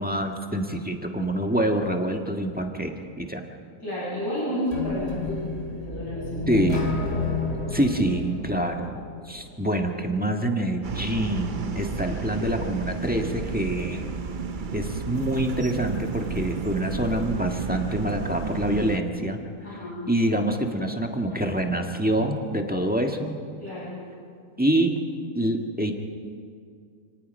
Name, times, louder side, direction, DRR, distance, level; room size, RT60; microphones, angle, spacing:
voice 1, 0.0-3.4 6.5-6.8 7.7-9.0 9.2-14.2 14.7-19.4 20.1-23.4 24.6-25.0 25.3-25.9, right 1 dB, 5° right, 2 dB, 1.4 m, -26 dB
voice 2, 3.8-5.5 5.7-6.4 19.6-20.0 23.6-23.9, left 1 dB, 70° left, -8 dB, 8.7 m, -30 dB
sound 1, 4.7-9.6, left 4 dB, 50° left, 2.9 m, -31 dB
sound 2, 10.8-19.0, right 5 dB, 40° right, 0.7 m, -32 dB
28.5 x 18.5 x 5.4 m, 2.2 s
omnidirectional pair, 1.7 m